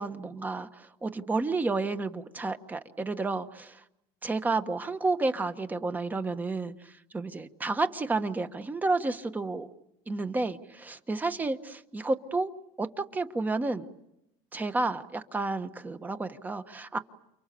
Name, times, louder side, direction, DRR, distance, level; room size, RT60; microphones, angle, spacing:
voice 1, 0.0-3.8 4.2-9.7 10.1-12.5 12.8-13.9 14.5-17.0, right 3 dB, 15° right, 9 dB, 1.3 m, -31 dB
29.5 x 29.0 x 6.9 m, 0.85 s
cardioid pair, 145°, 13 cm